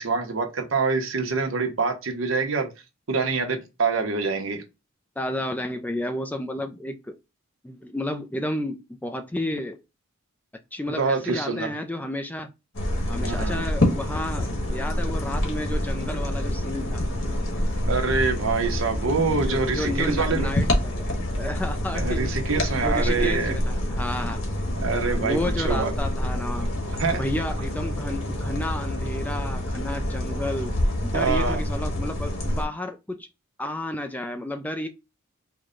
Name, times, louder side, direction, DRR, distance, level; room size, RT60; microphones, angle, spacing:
voice 1, 0.0-2.7 3.1-4.6 10.9-11.7 13.2-13.6 17.9-20.5 21.9-23.6 24.8-25.4 25.6-25.9 26.9-27.2 31.1-31.6, right 4 dB, 70° right, 1.0 m, -25 dB
voice 2, 5.2-7.2 7.6-9.8 10.7-12.5 13.1-17.0 19.3-21.0 21.4-22.3 22.8-24.5 25.2-26.7 27.1-30.7 31.0-33.3 33.6-34.9, left 1 dB, 10° left, 0.3 m, -31 dB
sound 1, 12.7-32.6, left 1 dB, 70° left, 1.3 m, -27 dB
4.7 x 2.2 x 3.8 m
head